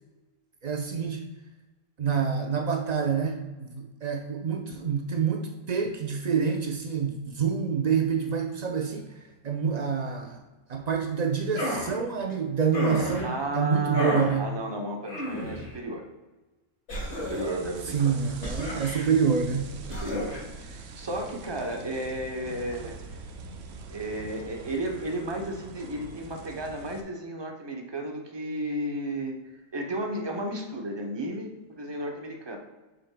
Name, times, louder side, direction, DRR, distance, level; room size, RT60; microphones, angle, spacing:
voice 1, 0.6-1.2 2.0-10.4 10.7-14.5 17.9-19.7, right 6 dB, 80° right, 1 dB, 0.3 m, -27 dB
sound 1, 11.5-11.9 12.7-13.3 13.9-14.3 15.1-15.7 16.9-17.6 18.4-19.1 19.9-20.4, left 1 dB, 50° left, 2.7 m, -31 dB
voice 2, 13.2-16.1 17.1-18.2 19.2-19.4 19.9-23.0 23.9-29.4 29.7-32.6, right 1 dB, 25° right, 2 dB, 0.6 m, -33 dB
sound 2, 17.0-27.0, right 4 dB, 65° right, 0.9 m, -43 dB
8.0 x 6.5 x 2.2 m, 1.1 s
omnidirectional pair, 1.5 m